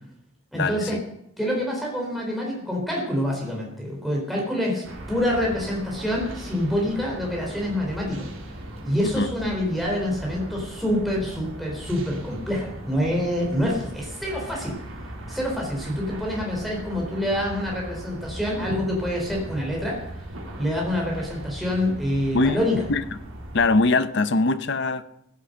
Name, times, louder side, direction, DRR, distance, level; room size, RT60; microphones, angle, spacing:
voice 1, 0.5-1.0 1.4-8.3 8.8-14.8 15.3-20.1 20.6-22.9, left 1 dB, ahead, -2 dB, 3.9 m, -26 dB
sound 1, 4.8-23.7, right 1 dB, 85° right, 3.0 m, -38 dB
voice 2, 23.5-25.0, left 3 dB, 60° left, 13 dB, 0.8 m, -21 dB
15.0 x 8.6 x 7.8 m, 0.77 s
head